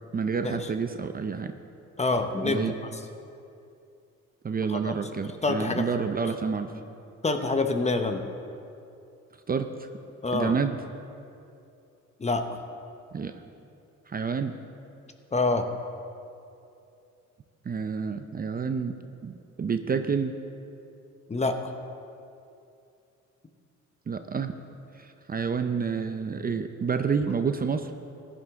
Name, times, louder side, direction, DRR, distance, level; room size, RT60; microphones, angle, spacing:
voice 1, 0.1-1.5 2.4-2.7 4.4-6.7 9.5-9.9 10.3-10.8 13.1-13.3 14.1-14.5 17.6-18.9 19.2-20.3 24.1-24.6 24.9-27.9, right 5 dB, 30° right, 8 dB, 0.6 m, -29 dB
voice 2, 2.0-2.7 4.7-4.9 5.4-5.8 7.2-8.2 10.2-10.5 12.2-12.5 15.3-15.7 21.3-21.7, left 3 dB, 20° left, 6 dB, 0.9 m, -26 dB
16.0 x 11.0 x 3.6 m, 2.6 s
cardioid pair, 90°, 30 cm